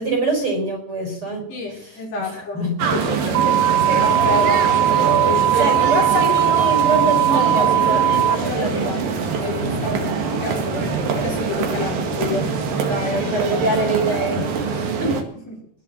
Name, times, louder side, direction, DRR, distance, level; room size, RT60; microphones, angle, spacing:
voice 1, 0.0-1.5 2.2-2.9 5.1-5.3 5.6-9.0 9.9-10.1 11.7-12.0 13.2-15.3, right 2 dB, 30° right, 3 dB, 5.4 m, -24 dB
voice 2, 1.5-2.6 2.9-3.6 3.9-4.7 5.2-6.0 7.4-9.0 9.4-10.9 11.1-12.5 12.8-13.4 15.5-15.6, left 2 dB, 75° left, -2 dB, 7.3 m, -29 dB
sound 1, 2.8-15.2, right 5 dB, 60° right, 3.4 m, -24 dB
sound 2, 3.4-8.4, right 11 dB, 75° right, 2.7 m, -18 dB
21.5 x 7.3 x 7.6 m, 0.67 s
omnidirectional pair, 4.8 m